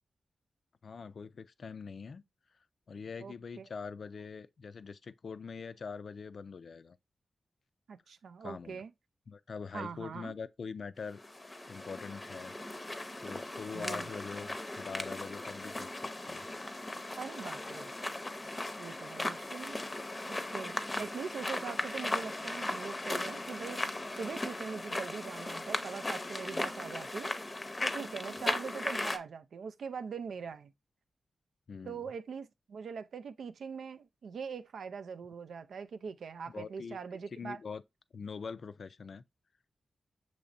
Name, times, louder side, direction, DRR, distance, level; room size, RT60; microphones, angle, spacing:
voice 1, 0.8-2.2 2.9-7.0 8.4-8.8 9.3-11.2 11.6-12.6 13.2-16.5 31.7-32.0 36.5-37.8 38.1-39.2, left 5 dB, 60° left, 0.3 m, -43 dB
voice 2, 3.2-3.7 7.9-8.9 9.7-10.4 13.7-14.1 17.2-17.9 18.8-19.8 20.3-23.8 24.1-27.3 27.8-30.7 31.8-37.6, right 6 dB, 85° right, 0.4 m, -42 dB
sound 1, 11.1-29.2, left 2 dB, 20° left, 0.6 m, -38 dB
6.8 x 3.1 x 2.5 m
wide cardioid pair, 105°, 0 cm